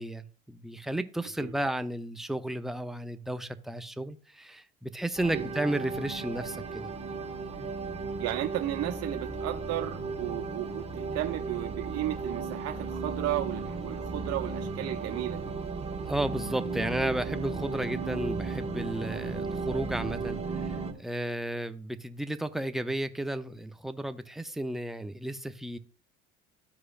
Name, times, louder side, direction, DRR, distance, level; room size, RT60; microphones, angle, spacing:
voice 1, 0.0-6.9 16.0-25.8, right 1 dB, ahead, 0.6 m, -33 dB
sound 1, 5.2-20.9, right 4 dB, 20° right, 1.5 m, -35 dB
voice 2, 8.2-15.5, right 14 dB, 55° right, 0.8 m, -34 dB
13.0 x 4.8 x 2.5 m
hypercardioid pair, 70°, 31 cm